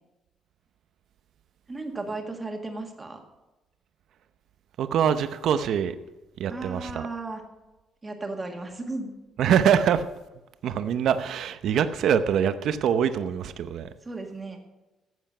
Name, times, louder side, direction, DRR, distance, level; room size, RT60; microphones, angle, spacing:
voice 1, 1.7-3.2 6.5-7.4 8.0-9.1 14.1-14.6, right 2 dB, 15° right, 1.8 m, -35 dB
voice 2, 4.8-6.0 6.4-7.0 9.4-10.1 10.6-13.9, right 8 dB, 60° right, 0.7 m, -24 dB
13.5 x 8.1 x 5.6 m
cardioid pair, 155°, 0 cm